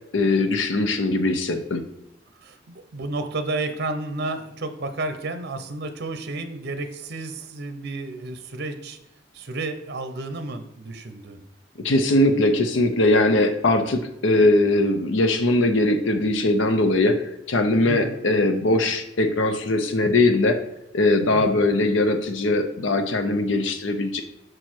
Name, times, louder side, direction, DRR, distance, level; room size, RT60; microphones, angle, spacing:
voice 1, 0.1-1.8 11.8-17.2 17.5-20.6 20.9-24.2, left 2 dB, 85° left, 7 dB, 0.7 m, -20 dB
voice 2, 2.4-9.0 9.3-11.4 12.3-12.6 17.9-18.2 21.3-21.6, right 2 dB, 60° right, 8 dB, 0.7 m, -32 dB
6.3 x 4.6 x 4.4 m, 0.85 s
head